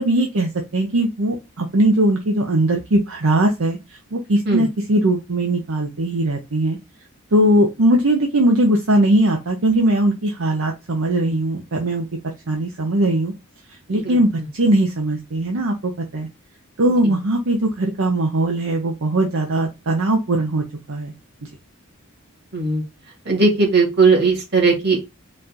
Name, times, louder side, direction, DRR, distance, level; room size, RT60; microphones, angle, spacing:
voice 1, 0.0-6.8 7.3-12.0 12.5-13.3 13.9-16.3 16.8-21.1, right 1 dB, 65° right, 2 dB, 0.7 m, -20 dB
voice 2, 22.5-22.8 23.3-25.0, right 4 dB, 45° right, 0 dB, 2.1 m, -17 dB
4.2 x 2.5 x 4.1 m, 0.25 s
head